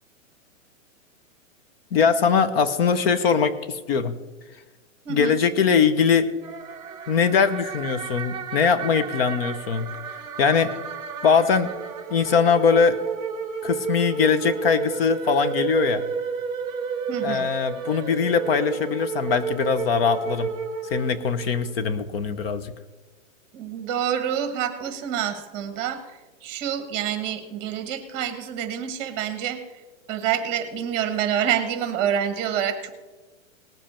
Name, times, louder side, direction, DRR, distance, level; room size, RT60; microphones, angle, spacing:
voice 1, 1.9-4.2 5.1-6.3 7.1-9.9 10.4-10.7 11.2-11.7 12.1-13.0 13.6-16.0 17.2-20.5 20.9-22.7, left 6 dB, 45° left, 11 dB, 0.9 m, -21 dB
voice 2, 5.0-5.4 17.1-17.5 23.5-26.0 26.4-29.6 30.1-32.9, right 9 dB, 25° right, 9 dB, 1.4 m, -27 dB
sound 1, 6.4-21.7, right 6 dB, 10° right, 0.9 m, -32 dB
19.0 x 7.4 x 4.4 m, 1.2 s
hypercardioid pair, 160°, 40 cm